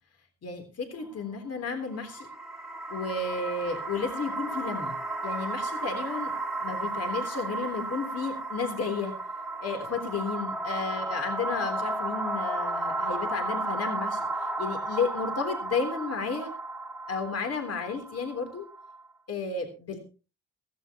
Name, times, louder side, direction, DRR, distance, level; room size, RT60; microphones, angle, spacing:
voice 1, 0.4-2.3 2.9-5.0 5.2-6.3 6.6-9.1 9.6-14.3 14.6-16.5 17.1-18.6 19.3-20.0, left 4 dB, 55° left, 5 dB, 3.5 m, -32 dB
sound 1, 1.8-19.0, right 2 dB, ahead, 1.8 m, -33 dB
16.0 x 15.0 x 3.0 m, 0.33 s
cardioid pair, 90°, 30 cm